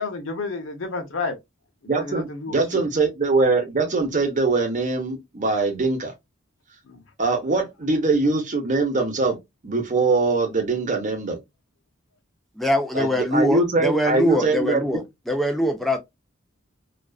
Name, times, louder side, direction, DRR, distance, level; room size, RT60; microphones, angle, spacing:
voice 1, 0.0-1.4 1.9-2.8 6.9-7.0, left 3 dB, 65° left, 0.6 m, -30 dB
voice 2, 1.9-6.1 7.2-9.4 9.6-11.4 12.9-15.0, right 3 dB, 35° right, 0.7 m, -22 dB
voice 3, 12.6-15.0 15.3-16.0, left 1 dB, ahead, 0.3 m, -23 dB
2.4 x 2.3 x 2.3 m
head